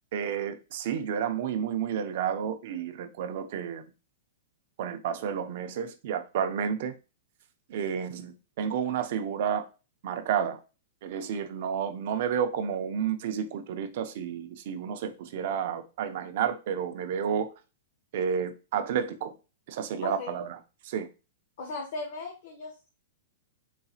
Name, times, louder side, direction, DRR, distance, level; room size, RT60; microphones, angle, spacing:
voice 1, 0.1-3.9 4.8-7.0 7.7-9.7 10.0-10.6 11.0-17.5 18.1-19.3 19.7-20.6 20.8-21.1, right 8 dB, 45° right, 0.4 m, -31 dB
voice 2, 20.0-20.4 21.6-22.9, left 3 dB, 50° left, 0.8 m, -37 dB
3.9 x 2.7 x 2.4 m
supercardioid pair, 170°, 0 cm